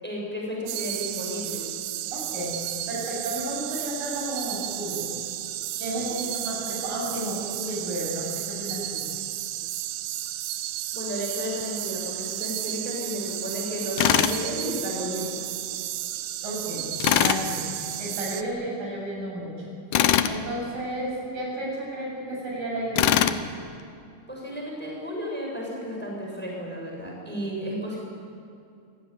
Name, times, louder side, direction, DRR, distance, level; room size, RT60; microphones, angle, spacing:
voice 1, 0.0-1.6 5.9-6.2 10.9-15.4 16.7-16.9 24.3-28.0, equal, ahead, -2 dB, 6.6 m, -33 dB
sound 1, 0.7-18.4, right 13 dB, 85° right, 2.9 m, -33 dB
voice 2, 2.1-2.5 2.9-5.1 5.8-9.0 16.4-19.7 20.2-23.3, right 1 dB, 60° right, -3 dB, 9.4 m, -32 dB
Tools, 14.0-14.4 17.0-17.4 19.9-20.4 23.0-23.4, left 11 dB, 75° left, 2.0 m, -21 dB
27.0 x 17.5 x 9.7 m, 2.5 s
omnidirectional pair, 4.4 m